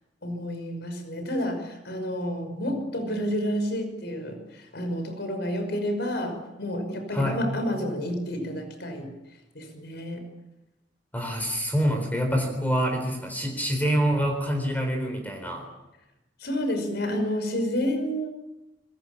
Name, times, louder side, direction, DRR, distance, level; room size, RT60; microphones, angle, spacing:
voice 1, 0.2-9.1 9.5-10.3 16.4-18.3, equal, 65° left, 7 dB, 5.9 m, -30 dB
voice 2, 7.1-7.5 11.1-15.7, equal, 10° left, 3 dB, 4.2 m, -26 dB
27.0 x 22.0 x 7.3 m, 0.97 s
head